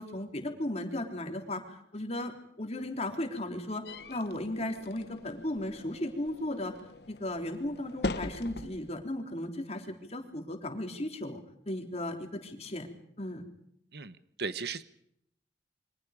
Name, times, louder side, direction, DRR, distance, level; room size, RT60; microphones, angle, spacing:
voice 1, 0.0-2.3 2.6-6.7 7.1-11.4 11.7-12.9 13.2-13.4, left 1 dB, 35° left, 4 dB, 3.7 m, -36 dB
sound 1, 3.9-9.0, left 2 dB, 65° left, 1.3 m, -41 dB
voice 2, 13.9-14.8, right 5 dB, 65° right, 13 dB, 1.2 m, -37 dB
28.5 x 24.5 x 5.1 m, 0.73 s
head